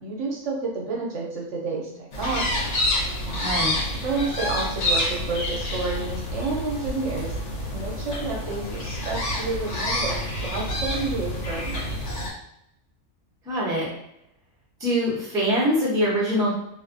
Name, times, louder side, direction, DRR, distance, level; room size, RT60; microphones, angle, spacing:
voice 1, 0.0-2.7 3.2-3.5 3.9-7.3 7.7-12.2, right 3 dB, 65° right, -2 dB, 0.9 m, -30 dB
sound 1, 2.1-12.3, left 1 dB, 65° left, 1.0 m, -28 dB
voice 2, 3.4-3.7 13.5-13.9 14.8-16.5, equal, 5° right, -7 dB, 0.5 m, -23 dB
2.4 x 2.3 x 2.5 m, 0.77 s
omnidirectional pair, 1.4 m